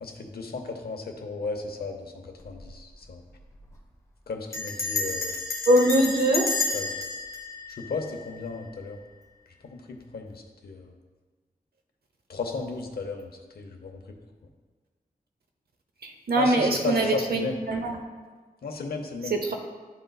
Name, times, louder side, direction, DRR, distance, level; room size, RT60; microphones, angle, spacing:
voice 1, 0.0-3.2 4.3-5.3 6.7-6.9 7.7-9.0 9.6-10.9 12.3-14.0 16.4-17.6 18.6-19.4, left 3 dB, 85° left, 3 dB, 0.8 m, -34 dB
Bell, 2.4-2.8 3.0-3.1 3.4-3.7 4.5-8.6, left 3 dB, 20° left, 0.9 m, -31 dB
voice 2, 5.7-6.5 16.0-18.0 19.3-19.5, right 1 dB, 85° right, 3 dB, 0.8 m, -23 dB
11.5 x 3.9 x 2.3 m, 1.4 s
wide cardioid pair, 110°, 16 cm